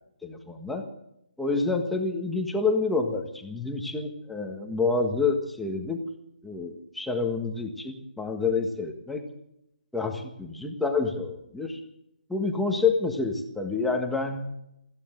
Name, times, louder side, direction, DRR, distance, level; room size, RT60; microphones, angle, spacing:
voice 1, 0.2-0.8 1.4-6.0 6.4-9.2 9.9-11.8 12.3-14.5, left 4 dB, ahead, 2 dB, 1.6 m, -28 dB
24.5 x 15.0 x 3.9 m, 0.80 s
hypercardioid pair, 160°, 5 cm